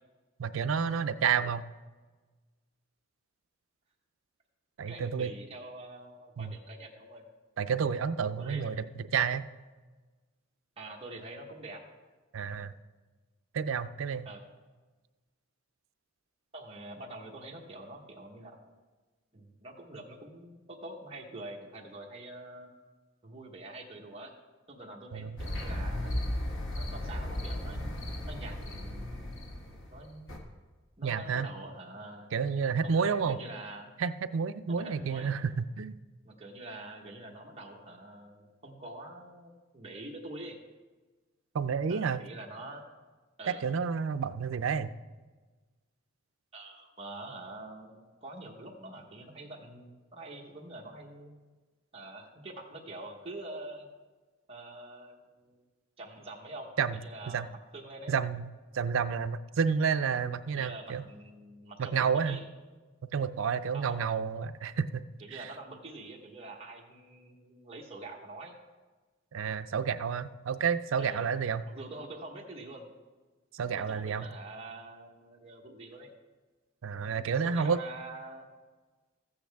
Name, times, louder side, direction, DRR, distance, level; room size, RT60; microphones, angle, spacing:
voice 1, 0.4-1.7 4.8-5.3 6.4-6.5 7.6-8.8 9.1-9.5 12.3-12.7 13.5-14.3 25.1-25.3 31.0-31.5 32.3-33.4 34.0-36.0 41.5-42.2 43.6-44.9 56.8-57.0 57.3-57.5 58.1-58.5 58.7-61.0 61.9-62.4 63.1-65.0 65.4-65.5 69.3-71.6 73.5-74.3 76.8-77.8, right 6 dB, 75° right, 11 dB, 0.4 m, -30 dB
voice 2, 4.9-7.2 8.4-8.7 10.8-11.8 14.2-14.4 16.5-18.6 19.3-22.7 23.2-24.3 24.7-26.4 26.7-27.9 28.3-29.3 29.9-30.3 31.0-32.3 32.8-33.9 34.7-35.3 36.2-40.6 41.9-42.9 43.4-43.7 46.5-51.3 51.9-53.9 54.5-55.6 56.0-58.1 60.5-62.4 63.7-64.1 65.2-68.6 71.0-71.3 71.7-72.8 73.8-76.1 77.0-78.5, right 2 dB, 30° right, -2 dB, 1.2 m, -45 dB
sound 1, 25.4-30.4, left 1 dB, 70° left, 1.5 m, -35 dB
14.0 x 8.8 x 3.5 m, 1.3 s
head